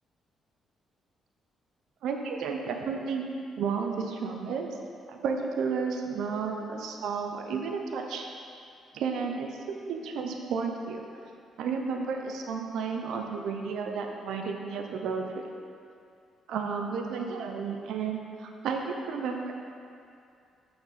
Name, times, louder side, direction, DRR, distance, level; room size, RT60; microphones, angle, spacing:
voice 1, 2.0-3.3 3.6-4.7 5.1-8.3 8.9-11.0 11.6-15.5 16.5-19.5, right 5 dB, 80° right, 3 dB, 0.6 m, -32 dB
6.2 x 6.0 x 4.1 m, 2.4 s
cardioid pair, 90°, 0 cm